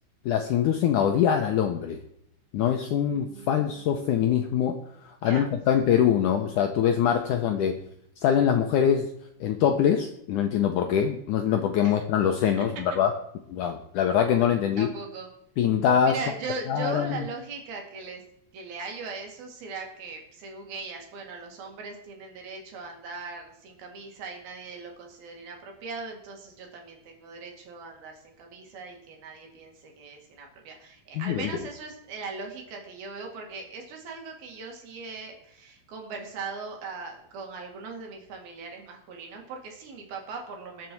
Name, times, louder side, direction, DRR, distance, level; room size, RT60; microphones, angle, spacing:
voice 1, 0.3-2.0 2.5-4.8 5.0-7.8 8.2-9.1 9.4-13.1 13.5-14.9 15.6-16.2 16.7-17.2 31.2-31.5, left 9 dB, 75° left, 5 dB, 1.9 m, -23 dB
voice 2, 3.0-3.9 5.2-5.5 11.8-12.0 14.8-15.3 16.0-18.2 18.5-40.9, right 4 dB, 70° right, 2 dB, 4.0 m, -39 dB
20.5 x 7.7 x 4.6 m, 0.74 s
omnidirectional pair, 4.6 m